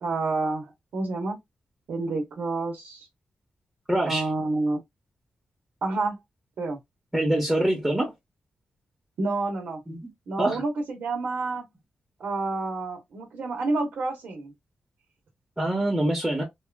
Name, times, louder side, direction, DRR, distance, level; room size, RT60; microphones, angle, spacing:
voice 1, 0.0-1.4 1.9-3.1 4.0-4.8 5.8-6.2 6.6-6.8 9.2-9.8 10.3-11.7 12.2-14.5, right 3 dB, 90° right, 1.0 m, -29 dB
voice 2, 3.9-4.3 7.1-8.1 9.9-10.0 10.4-10.6 15.6-16.4, right 1 dB, 10° right, 1.0 m, -24 dB
2.7 x 2.4 x 2.3 m
cardioid pair, 95°, 3 cm